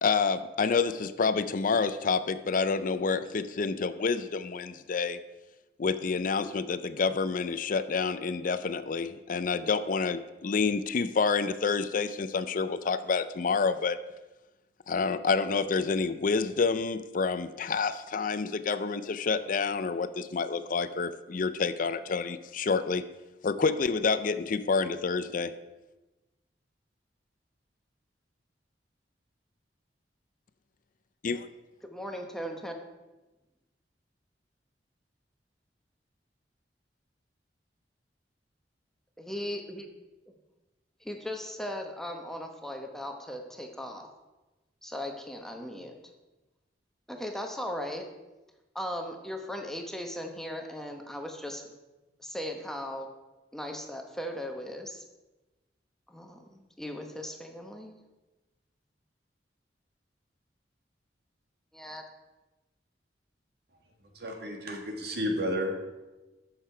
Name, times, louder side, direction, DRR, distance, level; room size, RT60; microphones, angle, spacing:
voice 1, 0.0-5.2 5.8-14.0 14.9-23.0 23.4-25.5 31.2-31.5, left 4 dB, 50° left, 12 dB, 0.5 m, -28 dB
voice 2, 31.8-32.7 39.2-39.9 40.3-40.4 41.0-44.1 44.8-46.1 47.1-48.1 48.7-51.6 52.2-53.1 53.5-55.0 56.1-58.0 61.7-62.0, left 1 dB, 5° left, 3 dB, 1.0 m, -38 dB
voice 3, 64.2-65.9, equal, 65° right, 3 dB, 1.8 m, -32 dB
13.0 x 6.6 x 4.6 m, 1.1 s
head